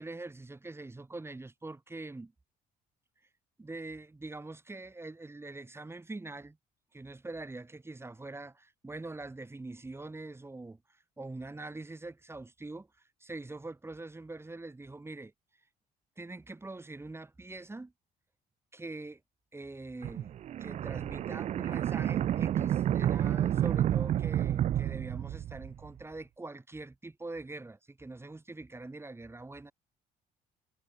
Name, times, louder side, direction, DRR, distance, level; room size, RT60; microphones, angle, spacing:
voice 1, 0.0-2.3 3.6-6.6 6.9-12.9 13.2-15.3 16.2-17.9 18.7-19.2 19.5-20.3 20.6-29.7, right 2 dB, 15° right, 5.7 m, -43 dB
sound 1, 20.0-25.9, right 11 dB, 40° right, 0.4 m, -30 dB
cardioid pair, 110°, 17 cm